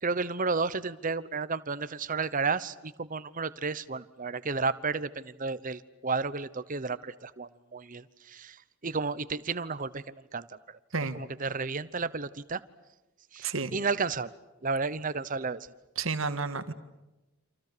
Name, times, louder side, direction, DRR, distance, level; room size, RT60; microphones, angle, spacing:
voice 1, 0.0-10.8 11.1-12.6 13.3-14.3 14.6-15.7, right 4 dB, 40° right, 15 dB, 0.9 m, -32 dB
voice 2, 13.4-13.8 16.0-16.7, right 4 dB, 65° right, 10 dB, 1.8 m, -31 dB
28.5 x 27.0 x 6.9 m, 1.0 s
head